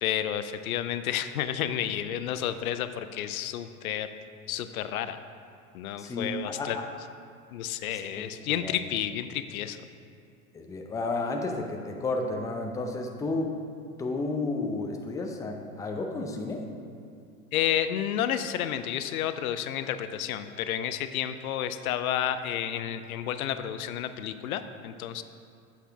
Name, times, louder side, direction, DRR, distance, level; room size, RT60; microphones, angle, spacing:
voice 1, 0.0-4.1 4.5-5.2 5.7-6.8 7.5-9.8 17.5-25.2, left 10 dB, 75° left, 11 dB, 0.5 m, -31 dB
voice 2, 6.0-6.8 7.9-8.8 10.5-13.6 14.0-16.7, left 3 dB, 10° left, 3 dB, 0.5 m, -32 dB
8.3 x 5.8 x 3.4 m, 2.4 s
hypercardioid pair, 95°, 43 cm